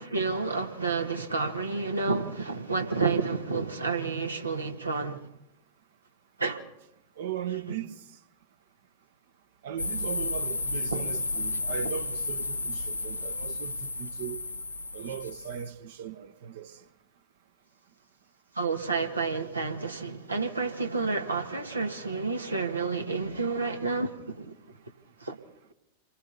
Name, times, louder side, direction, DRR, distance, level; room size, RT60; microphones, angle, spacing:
voice 1, 0.0-5.3 6.4-6.6 7.7-7.8 10.9-11.1 18.5-24.5 25.2-25.4, right 4 dB, 80° right, 1.7 m, -30 dB
voice 2, 7.2-7.9 9.6-14.4 14.9-16.7, right 9 dB, 55° right, 1.2 m, -38 dB
sound 1, 9.8-15.7, left 2 dB, 80° left, 0.7 m, -33 dB
28.0 x 23.0 x 4.1 m
figure-of-eight pair, 90°, 0 cm